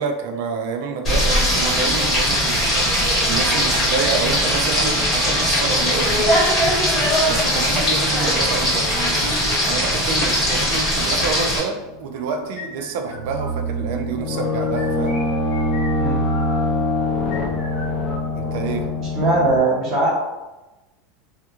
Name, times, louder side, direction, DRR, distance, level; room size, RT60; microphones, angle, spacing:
voice 1, 0.0-6.7 7.3-8.9 9.7-15.2 18.3-18.9, right 5 dB, 55° right, 5 dB, 0.4 m, -28 dB
Frying (food), 1.0-11.6, equal, 15° left, 1.0 m, -20 dB
sound 1, 3.9-5.4 6.0-7.4 7.9-9.5 10.0-11.6 12.1-13.6 14.3-16.6 17.2-18.7, left 2 dB, 55° left, 1.0 m, -38 dB
sound 2, 11.4-12.1 13.1-19.6, left 1 dB, 40° left, 0.3 m, -24 dB
voice 2, 19.0-20.1, right 2 dB, 35° right, -5 dB, 0.9 m, -20 dB
2.9 x 2.4 x 2.4 m, 1.0 s
supercardioid pair, 170°, 0 cm